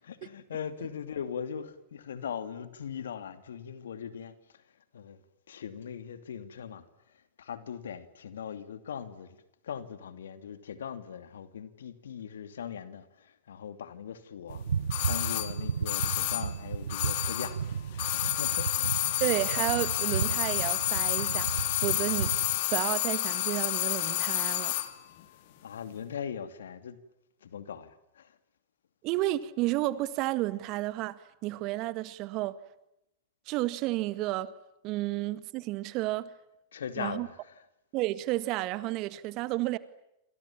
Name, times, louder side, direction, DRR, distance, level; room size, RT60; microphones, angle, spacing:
voice 1, 0.0-4.6 4.9-5.2 5.5-6.9 7.4-9.4 9.6-14.6 15.0-17.6 18.0-18.7 25.6-27.0 27.4-28.4 36.7-37.4, left 8 dB, 80° left, 2.6 m, -40 dB
sound 1, 14.5-22.6, right 7 dB, 80° right, 1.2 m, -34 dB
sound 2, 14.9-17.7 17.9-24.9 25.2-25.3, left 16 dB, 60° left, 3.1 m, -30 dB
voice 2, 19.2-22.3 22.7-24.8 29.0-32.6 33.5-34.5 34.8-36.3 37.0-37.3 37.9-39.8, right 17 dB, 45° right, 1.9 m, -31 dB
28.0 x 27.5 x 7.4 m
hypercardioid pair, 105°, 0 cm